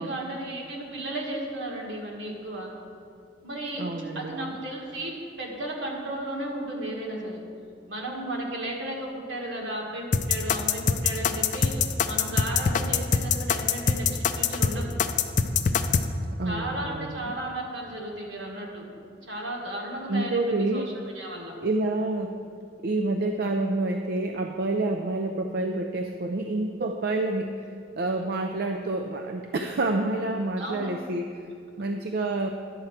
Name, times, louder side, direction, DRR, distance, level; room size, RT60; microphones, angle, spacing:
voice 1, 0.0-2.7 3.4-3.8 4.2-7.4 7.9-14.9 16.4-20.8 21.2-21.6 30.6-30.9, right 1 dB, 70° right, -1 dB, 1.7 m, -34 dB
voice 2, 3.8-4.6 16.3-17.3 20.1-20.9 21.6-22.4 22.8-31.3 31.8-32.5, right 2 dB, 55° right, 5 dB, 0.4 m, -28 dB
sound 1, 10.1-16.1, left 6 dB, 40° left, 0.4 m, -23 dB
11.0 x 4.5 x 7.3 m, 2.4 s
head